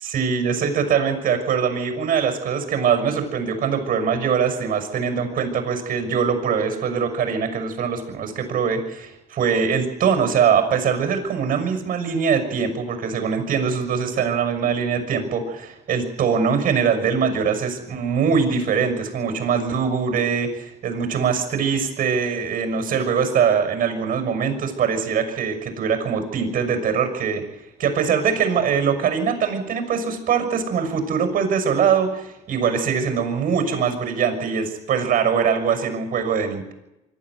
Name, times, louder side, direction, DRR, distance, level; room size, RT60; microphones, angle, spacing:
voice 1, 0.0-27.4 27.8-36.7, right 6 dB, 55° right, 5 dB, 6.1 m, -22 dB
24.5 x 13.0 x 9.6 m, 0.96 s
cardioid pair, 110°, 17 cm